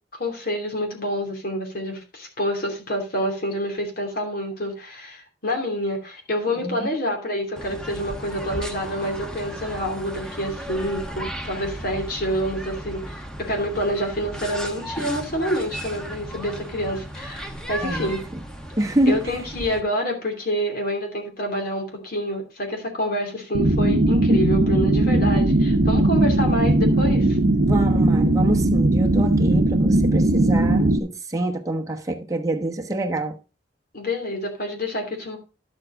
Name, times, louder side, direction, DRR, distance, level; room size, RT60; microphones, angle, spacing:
voice 1, 0.1-18.2 19.1-27.4 33.9-35.4, equal, 55° left, 2.9 m, -27 dB
sound 1, 7.6-19.8, equal, 5° left, 1.1 m, -35 dB
voice 2, 18.8-19.4 27.6-33.4, right 1 dB, 20° right, 1.1 m, -25 dB
sound 2, 23.5-31.0, right 1 dB, 70° right, 0.9 m, -19 dB
11.5 x 7.6 x 3.7 m
head